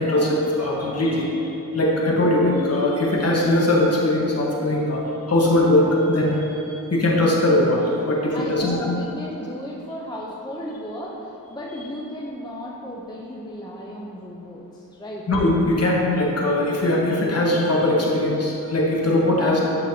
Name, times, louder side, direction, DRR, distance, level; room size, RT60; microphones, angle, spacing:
voice 1, 0.0-8.8 15.3-19.6, left 1 dB, 40° left, -3 dB, 1.3 m, -20 dB
voice 2, 8.3-15.2 19.4-19.6, equal, 10° left, -3 dB, 0.6 m, -34 dB
9.1 x 5.6 x 2.8 m, 2.9 s
wide cardioid pair, 110°, 37 cm